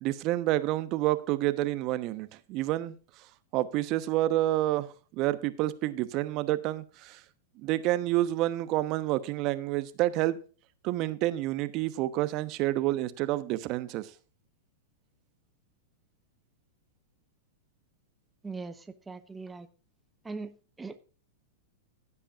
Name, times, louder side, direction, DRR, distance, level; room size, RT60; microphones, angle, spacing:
voice 1, 0.0-3.0 3.5-7.2 7.6-10.4 10.8-14.1, right 16 dB, 45° right, 1.0 m, -29 dB
voice 2, 18.4-19.7 20.2-21.0, right 4 dB, 10° right, 1.0 m, -40 dB
16.0 x 8.4 x 2.5 m
hypercardioid pair, 115°, 0 cm